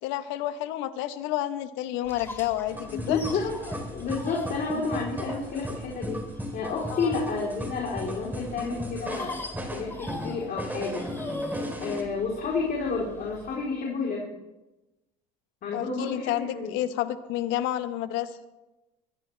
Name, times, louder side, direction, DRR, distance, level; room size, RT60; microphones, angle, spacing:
voice 1, 0.0-3.2 6.9-7.1 15.7-18.4, left 13 dB, 75° left, 11 dB, 1.3 m, -30 dB
sound 1, 2.0-13.6, left 2 dB, 10° left, 5.9 m, -43 dB
sound 2, 2.7-12.0, equal, 10° right, 3.6 m, -36 dB
voice 2, 2.9-3.6 3.9-6.2 6.5-9.4 9.7-11.1 11.8-14.3 15.6-16.7, left 4 dB, 50° left, -3 dB, 4.0 m, -30 dB
23.0 x 15.0 x 3.4 m, 1.0 s
supercardioid pair, 85°, 20 cm